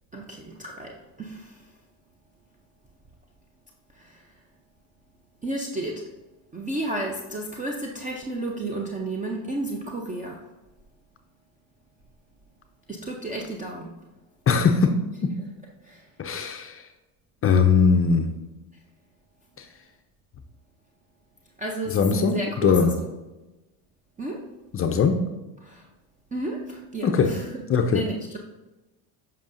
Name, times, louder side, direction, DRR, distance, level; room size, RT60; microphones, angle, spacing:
voice 1, 0.1-0.9 1.2-1.4 5.4-6.0 6.5-10.4 12.9-13.9 15.9-16.0 21.6-23.1 24.2-24.4 25.7-25.8 26.3-27.6 27.9-28.4, right 2 dB, 15° right, 0 dB, 0.6 m, -32 dB
voice 2, 14.5-15.0 16.2-16.9 17.4-18.3 19.6-19.7 21.9-22.9 24.7-25.2 27.0-27.3 27.7-28.0, left 5 dB, 30° left, 6 dB, 0.5 m, -20 dB
6.9 x 5.5 x 2.6 m, 1.1 s
supercardioid pair, 105°, 44 cm